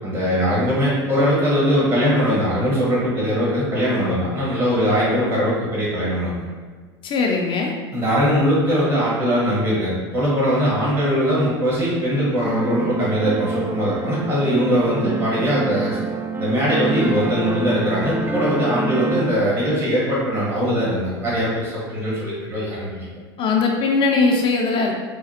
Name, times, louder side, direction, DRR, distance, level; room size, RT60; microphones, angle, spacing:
voice 1, 0.0-6.5 7.9-16.0 16.4-23.1, equal, 40° right, -7 dB, 1.5 m, -21 dB
voice 2, 7.0-7.7 23.4-24.9, left 4 dB, 40° left, 1 dB, 0.5 m, -20 dB
sound 1, 12.4-19.2, right 3 dB, 15° right, 0.3 m, -26 dB
5.0 x 2.3 x 2.8 m, 1.5 s
hypercardioid pair, 80°, 14 cm